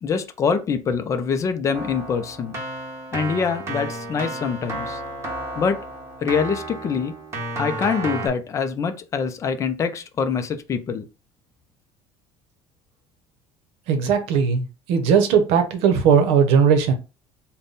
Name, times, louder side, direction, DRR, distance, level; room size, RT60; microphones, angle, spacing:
voice 1, 0.0-2.6 3.1-5.0 5.6-5.8 6.2-7.1 7.6-11.1, left 6 dB, 30° left, 0.4 m, -24 dB
Keyboard (musical), 1.7-8.3, right 2 dB, 25° right, 1.4 m, -32 dB
voice 2, 13.9-16.9, right 6 dB, 70° right, 0.8 m, -18 dB
3.5 x 2.2 x 4.0 m
cardioid pair, 145°, 10 cm